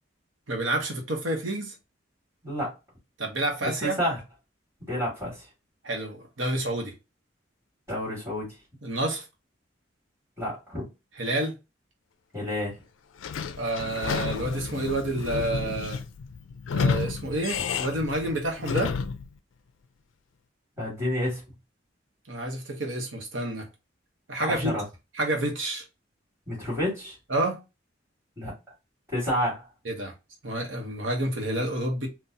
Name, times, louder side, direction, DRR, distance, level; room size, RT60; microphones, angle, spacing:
voice 1, 0.5-1.7 3.2-4.0 5.8-6.9 8.8-9.2 11.2-11.5 13.6-16.0 16.7-18.9 22.3-23.7 24.3-24.7 25.1-25.8 27.3-27.6 29.8-30.1 30.4-32.1, right 1 dB, 85° right, 1.0 m, -29 dB
voice 2, 3.6-4.2 4.8-5.5 7.9-8.5 10.4-10.9 12.3-12.8 20.8-21.4 24.5-24.8 26.5-27.2 28.4-28.5 29.1-29.7, equal, 15° right, 2.0 m, -29 dB
Sliding door / Squeak, 13.2-19.3, left 5 dB, 90° left, 0.4 m, -31 dB
3.9 x 2.3 x 2.6 m
head